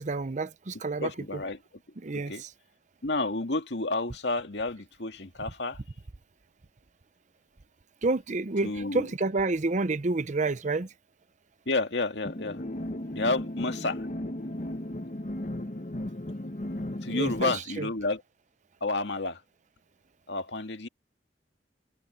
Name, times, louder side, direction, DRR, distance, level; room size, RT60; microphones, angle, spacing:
voice 1, 0.0-1.4 2.0-2.5 8.0-10.9 17.1-17.9, right 3 dB, 45° right, 0.7 m, -29 dB
voice 2, 1.0-1.6 2.1-2.4 3.0-5.8 8.6-9.0 11.7-12.6 13.1-14.0 17.0-18.2 18.8-19.4 20.3-20.9, left 2 dB, 75° left, 2.1 m, -30 dB
sound 1, 12.2-17.6, left 1 dB, 45° left, 1.1 m, -35 dB
head